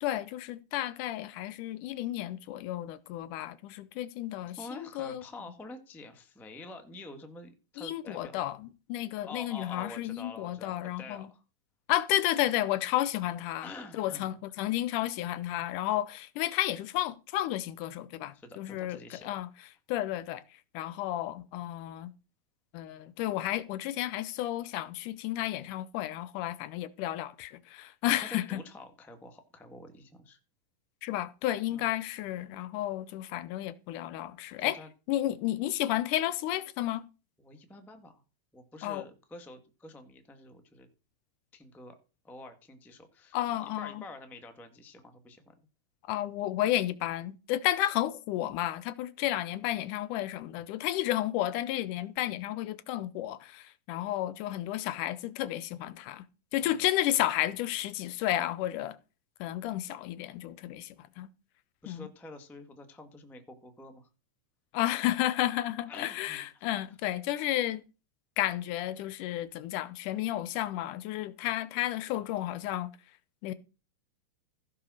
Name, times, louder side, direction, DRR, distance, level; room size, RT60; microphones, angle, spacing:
voice 1, 0.0-5.2 7.8-11.3 11.9-13.7 14.0-19.0 19.2-19.5 19.9-20.4 20.7-22.1 22.7-28.6 31.0-34.8 35.1-37.0 38.8-39.0 43.3-44.0 46.1-56.2 56.5-59.0 59.4-61.3 61.9-62.1 64.7-67.8 68.4-72.9 73.4-73.5, left 14 dB, 80° left, 2.1 m, -32 dB
voice 2, 4.6-8.4 9.2-11.4 13.6-14.4 18.3-19.3 28.2-30.4 31.7-31.9 34.6-34.9 37.4-38.2 38.5-40.9 41.5-42.0 42.2-45.5 56.6-56.8 61.8-64.1 65.9-66.7, left 2 dB, ahead, 0.7 m, -47 dB
15.5 x 5.5 x 6.3 m
omnidirectional pair, 3.8 m